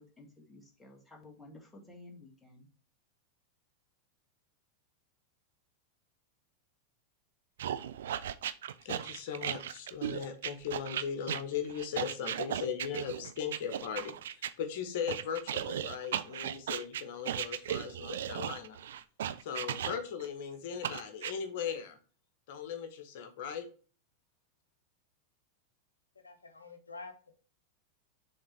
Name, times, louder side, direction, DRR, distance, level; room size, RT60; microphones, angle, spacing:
voice 1, 0.0-2.7, left 2 dB, 10° left, 1.8 m, -53 dB
sound 1, 7.6-14.5 15.1-20.3 20.8-21.3, right 10 dB, 65° right, 0.4 m, -36 dB
voice 2, 8.8-18.8 19.4-22.0 22.5-23.7, left 7 dB, 55° left, 1.2 m, -38 dB
voice 3, 26.2-27.3, left 3 dB, 85° left, 0.7 m, -48 dB
6.4 x 3.7 x 4.4 m
figure-of-eight pair, 90°, 0 cm